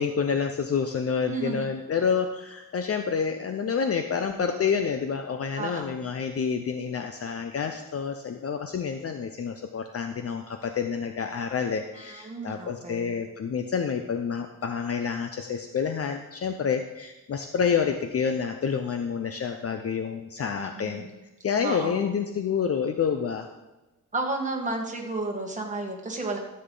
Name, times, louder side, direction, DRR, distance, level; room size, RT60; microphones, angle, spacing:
voice 1, 0.0-21.0 21.4-23.5, left 6 dB, 50° left, 6 dB, 0.6 m, -28 dB
voice 2, 1.2-1.7 5.5-5.9 12.0-13.1 20.5-21.1 21.6-22.1 24.1-26.4, right 3 dB, 25° right, 0 dB, 1.6 m, -32 dB
13.0 x 7.7 x 3.9 m, 1.1 s
wide cardioid pair, 170°, 31 cm